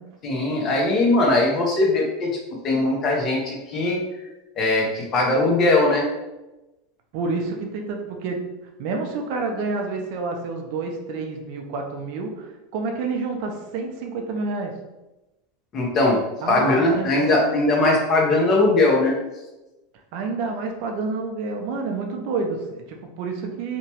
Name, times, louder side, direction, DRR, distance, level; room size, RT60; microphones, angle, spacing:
voice 1, 0.2-2.3 2.6-4.0 4.6-6.1 15.7-19.2, left 2 dB, 40° left, -1 dB, 0.8 m, -20 dB
voice 2, 7.1-14.8 16.4-17.1 20.1-23.8, right 4 dB, 60° right, 3 dB, 0.5 m, -29 dB
2.8 x 2.2 x 2.9 m, 1.0 s
supercardioid pair, 110°, 0 cm